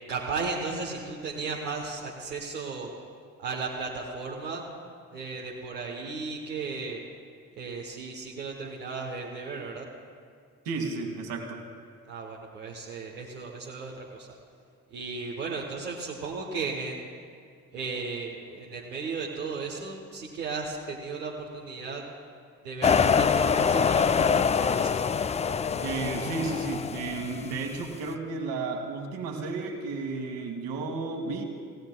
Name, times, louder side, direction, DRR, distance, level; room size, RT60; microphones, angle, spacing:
voice 1, 0.1-2.9 3.4-4.6 5.1-7.0 7.6-9.9 12.1-14.3 14.9-17.1 17.7-22.0 22.6-25.1, right 4 dB, 85° right, -3 dB, 1.1 m, -35 dB
voice 2, 10.7-11.6 25.8-31.4, right 3 dB, 65° right, 3 dB, 1.9 m, -33 dB
sound 1, 22.8-27.8, left 6 dB, 15° left, 0.3 m, -25 dB
27.5 x 16.0 x 2.3 m, 2.2 s
figure-of-eight pair, 40°, 45 cm